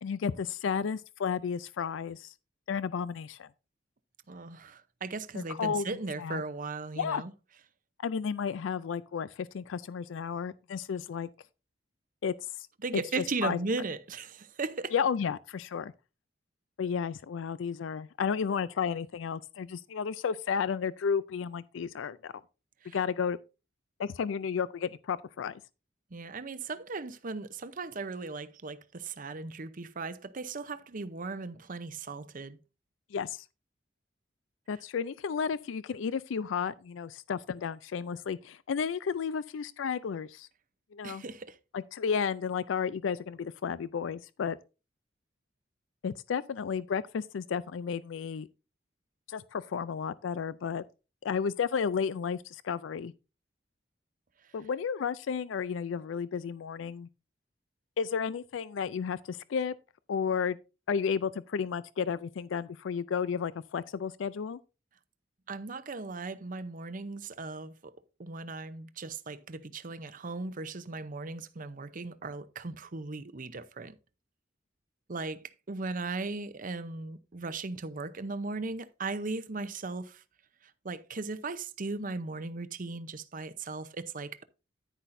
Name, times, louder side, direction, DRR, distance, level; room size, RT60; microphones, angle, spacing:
voice 1, 0.0-2.3 2.7-3.5 5.3-5.9 6.2-6.4 7.0-7.2 8.0-11.3 12.2-12.7 13.4-13.6 14.9-15.9 16.8-22.3 22.9-23.4 24.0-25.6 33.1-33.5 34.7-40.5 40.9-41.2 41.7-44.6 46.0-48.5 49.3-50.8 51.2-53.1 54.5-57.1 58.0-59.7 60.1-60.6 60.9-64.6, left 6 dB, 90° left, 0.4 m, -32 dB
voice 2, 4.3-7.3 12.8-14.9 22.8-23.0 26.1-32.6 41.0-41.6 65.5-67.9 68.2-74.0 75.1-80.2 80.6-84.4, right 3 dB, 45° right, 0.7 m, -37 dB
10.0 x 9.8 x 2.6 m
head